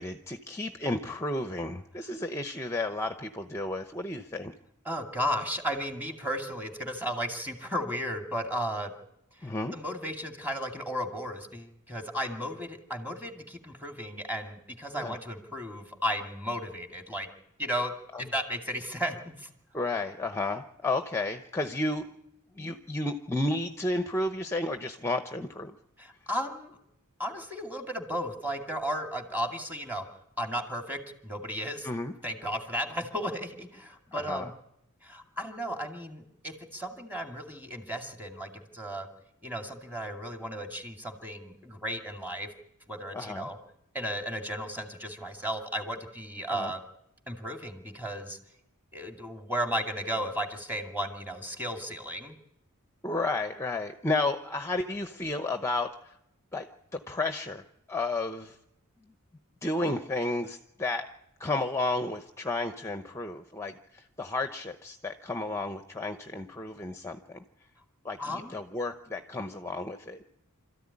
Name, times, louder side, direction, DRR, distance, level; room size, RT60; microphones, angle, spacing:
voice 1, 0.0-4.5 9.4-9.7 14.9-15.2 18.1-18.3 19.7-22.0 22.5-25.8 31.8-32.1 34.1-34.5 43.1-43.5 46.5-46.7 53.0-56.1 56.5-56.7 56.9-57.6 57.9-58.6 59.6-61.1 61.4-67.4 68.0-70.2, left 2 dB, 10° left, 7 dB, 0.8 m, -32 dB
voice 2, 4.9-8.9 9.3-17.3 17.6-17.9 18.2-19.5 26.0-26.8 27.2-30.0 30.4-31.9 32.2-34.5 35.0-39.1 39.4-42.5 42.9-43.6 43.9-46.8 47.3-48.4 48.9-52.3 68.2-68.5, equal, 10° right, 3 dB, 2.5 m, -34 dB
26.5 x 14.0 x 9.8 m, 0.84 s
head